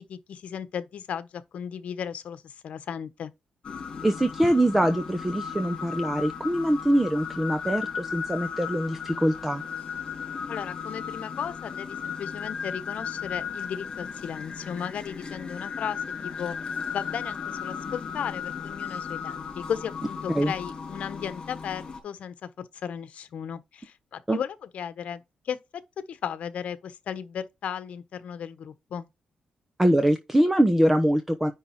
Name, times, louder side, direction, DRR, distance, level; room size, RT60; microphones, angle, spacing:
voice 1, 0.0-3.3 10.5-16.5 16.9-25.8 26.1-29.1, left 8 dB, 65° left, 1.2 m, -35 dB
sound 1, 3.6-22.0, left 6 dB, 40° left, 4.1 m, -35 dB
voice 2, 4.0-9.6 20.3-20.5 24.3-24.4 29.8-31.5, right 1 dB, 10° right, 0.9 m, -23 dB
10.0 x 3.6 x 4.4 m
wide cardioid pair, 145°, 2 cm